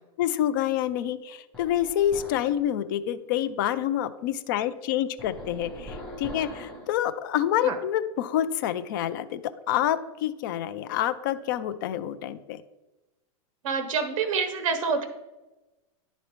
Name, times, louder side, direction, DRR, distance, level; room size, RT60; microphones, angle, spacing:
voice 1, 0.2-9.4 9.7-12.6, left 11 dB, 35° left, 12 dB, 0.4 m, -27 dB
sound 1, 1.5-2.6 5.2-6.9, left 1 dB, 5° left, 1.0 m, -41 dB
voice 2, 13.6-15.0, right 5 dB, 60° right, 7 dB, 1.0 m, -27 dB
11.0 x 4.0 x 3.1 m, 1.1 s
supercardioid pair, 175°, 19 cm